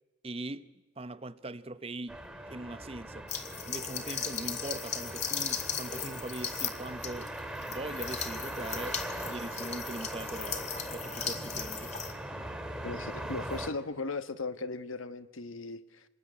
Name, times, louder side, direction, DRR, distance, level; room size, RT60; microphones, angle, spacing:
voice 1, 0.2-0.7 1.0-2.2 2.5-3.3 3.7-7.3 7.7-9.0 9.3-11.9, right 2 dB, 30° right, 0.8 m, -41 dB
sound 1, 2.1-13.7, right 1 dB, ahead, 2.1 m, -41 dB
sound 2, 3.3-12.1, left 7 dB, 35° left, 2.1 m, -37 dB
voice 2, 12.8-16.1, left 3 dB, 85° left, 1.2 m, -37 dB
25.5 x 20.5 x 9.8 m
head